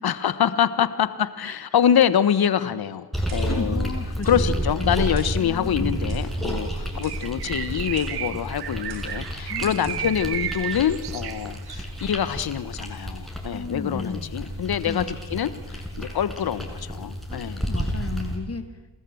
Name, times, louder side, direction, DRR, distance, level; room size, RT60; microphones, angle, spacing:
voice 1, 0.0-3.0 3.3-3.9 4.2-17.6, left 9 dB, 55° left, 15 dB, 1.4 m, -25 dB
sound 1, 3.1-18.4, equal, ahead, 6.8 m, -31 dB
Clock, 3.3-3.6 4.2-4.4 5.1-5.4 6.1-6.4 7.0-7.3 8.0-8.2 8.9-9.2 9.8-10.1, right 4 dB, 80° right, 5.4 m, -48 dB
voice 2, 3.5-6.0 9.5-10.1 13.5-14.3 14.8-15.2 17.3-18.8, left 4 dB, 35° left, 10 dB, 2.2 m, -35 dB
Bird, 7.0-11.9, right 12 dB, 60° right, 0.9 m, -34 dB
28.5 x 13.5 x 7.9 m, 1.3 s
supercardioid pair, 55°, 43 cm